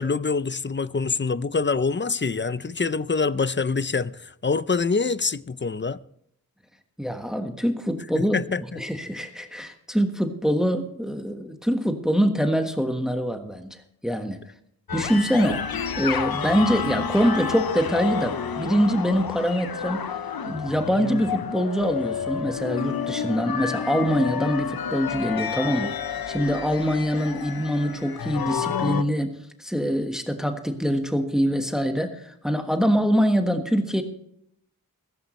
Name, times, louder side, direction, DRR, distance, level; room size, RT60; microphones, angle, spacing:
voice 1, 0.0-6.0 8.1-8.8, left 4 dB, 30° left, 0.5 m, -25 dB
voice 2, 7.0-8.3 8.8-14.4 14.9-15.7 16.0-20.1 20.5-25.9 26.3-34.0, equal, ahead, 1.4 m, -24 dB
sound 1, 14.9-29.0, left 7 dB, 75° left, 0.7 m, -30 dB
15.5 x 14.5 x 3.2 m
wide cardioid pair, 50°, 36 cm